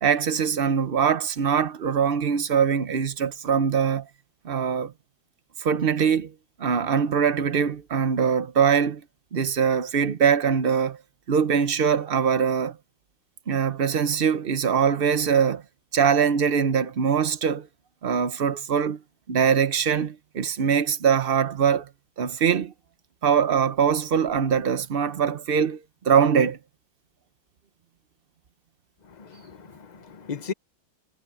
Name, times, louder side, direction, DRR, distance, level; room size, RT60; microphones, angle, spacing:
voice 1, 0.0-4.1 4.4-4.9 5.6-6.3 6.6-9.0 9.3-11.0 11.3-12.8 13.5-15.6 15.9-17.7 18.0-19.0 19.3-21.9 22.2-22.7 23.2-26.6, right 7 dB, 80° right, 0.5 m, -22 dB
voice 2, 29.2-30.5, left 6 dB, 50° left, 0.5 m, -36 dB
omnidirectional pair, 2.2 m